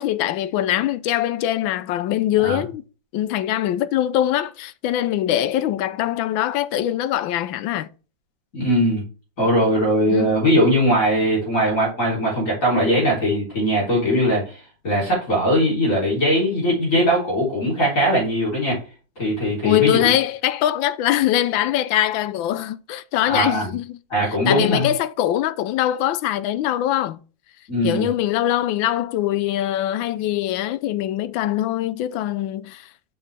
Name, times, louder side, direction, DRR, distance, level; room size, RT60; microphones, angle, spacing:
voice 1, 0.0-2.8 3.1-7.9 10.1-10.4 19.6-24.0 24.5-27.2 27.8-32.9, left 12 dB, 85° left, 1.4 m, -22 dB
voice 2, 8.5-9.0 9.4-18.8 19.2-20.1 23.3-23.7 24.1-24.9 27.7-28.1, equal, 40° left, 4.0 m, -20 dB
7.0 x 5.4 x 3.4 m
omnidirectional pair, 2.1 m